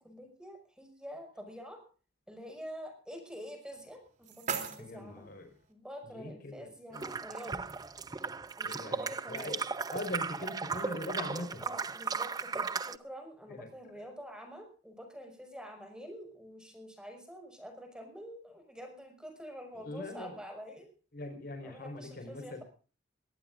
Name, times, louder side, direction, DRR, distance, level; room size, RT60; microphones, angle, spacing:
voice 1, 0.0-1.8 2.3-5.3 5.7-7.7 8.6-9.6 11.6-20.9 21.6-22.6, equal, 5° right, 4 dB, 6.0 m, -47 dB
sound 1, 3.7-5.7, right 5 dB, 40° right, 3.2 m, -41 dB
voice 2, 4.8-5.5 6.0-7.1 8.6-9.0 9.3-9.6 9.9-11.7 13.5-13.7 19.7-20.3 21.1-22.6, left 1 dB, 50° left, 6 dB, 4.8 m, -41 dB
sound 2, 6.9-13.0, right 5 dB, 20° right, 0.6 m, -36 dB
23.0 x 18.0 x 2.6 m, 0.38 s
head